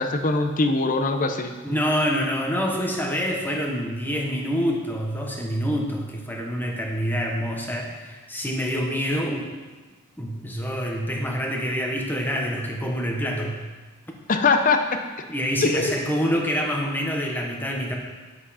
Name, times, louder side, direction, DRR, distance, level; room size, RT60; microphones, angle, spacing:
voice 1, 0.0-1.5 14.3-15.0 15.6-16.0, left 3 dB, 40° left, 6 dB, 0.7 m, -22 dB
voice 2, 1.6-9.5 10.2-13.6 15.3-18.0, equal, 10° left, 0 dB, 1.2 m, -26 dB
9.9 x 7.8 x 4.2 m, 1.3 s
head